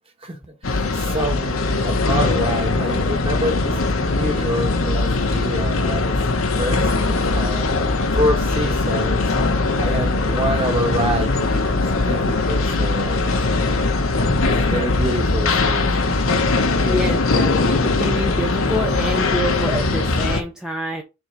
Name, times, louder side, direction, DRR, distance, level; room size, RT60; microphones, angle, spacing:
voice 1, 0.2-6.2 6.6-7.7 8.2-9.3 9.8-13.2 14.4-15.9, right 1 dB, 25° right, 1.5 m, -27 dB
sound 1, 0.6-20.4, left 3 dB, 70° left, 1.0 m, -20 dB
voice 2, 16.8-21.0, equal, 5° right, 0.7 m, -26 dB
4.6 x 3.8 x 5.6 m
head